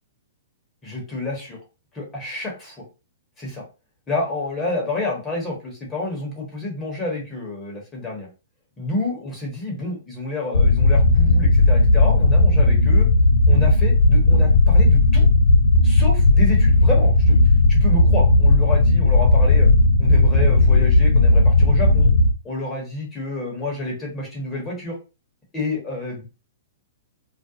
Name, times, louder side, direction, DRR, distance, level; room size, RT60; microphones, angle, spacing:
voice 1, 0.8-1.6 1.9-2.8 3.4-3.6 4.1-8.3 8.8-13.1 13.5-15.3 15.8-19.7 20.0-22.1 22.4-25.0 25.5-26.2, left 2 dB, 20° left, -1 dB, 1.0 m, -29 dB
sound 1, 10.5-22.3, left 2 dB, 85° left, 0.3 m, -15 dB
2.4 x 2.1 x 2.7 m, 0.31 s
hypercardioid pair, 135°, 0 cm